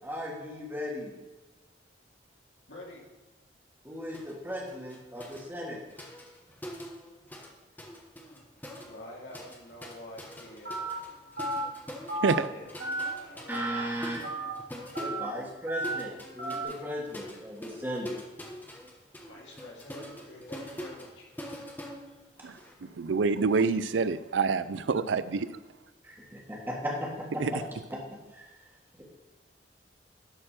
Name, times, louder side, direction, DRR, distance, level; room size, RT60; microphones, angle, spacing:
voice 1, 0.0-1.2 3.8-5.8 13.5-14.2 15.0-18.1 26.0-27.6 27.9-28.0 28.3-28.5, equal, 10° right, -2 dB, 1.7 m, -36 dB
voice 2, 2.7-3.0 8.8-10.8 12.2-12.7 13.1-13.9 14.9-15.7 19.2-21.3, left 1 dB, 70° left, -3 dB, 2.7 m, -48 dB
sound 1, 4.1-4.4 4.7-7.5 7.8-22.7, equal, 10° left, 1.0 m, -44 dB
Telephone, 10.6-10.9 11.4-11.6 12.1-12.3 12.8-13.1 13.5-13.8 14.2-14.5 14.9-15.2 15.7-15.9 16.4-16.6, right 1 dB, 60° right, 3.4 m, -33 dB
voice 3, 23.0-25.6 27.4-27.5, right 4 dB, 85° right, 15 dB, 0.5 m, -27 dB
11.0 x 4.5 x 5.8 m, 1.2 s
head